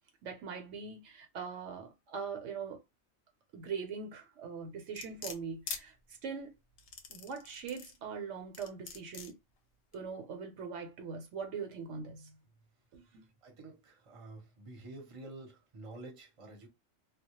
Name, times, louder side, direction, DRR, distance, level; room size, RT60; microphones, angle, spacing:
voice 1, 0.2-2.8 3.5-5.9 6.2-6.5 7.1-9.4 9.9-12.3 12.9-13.3, right 5 dB, 75° right, 0.9 m, -41 dB
sound 1, 5.0-5.8 6.8-8.0 8.5-9.3 9.9-10.0, left 6 dB, 65° left, 0.8 m, -43 dB
voice 2, 13.4-16.7, right 2 dB, 30° right, 0.7 m, -49 dB
2.2 x 2.0 x 2.8 m
omnidirectional pair, 1.3 m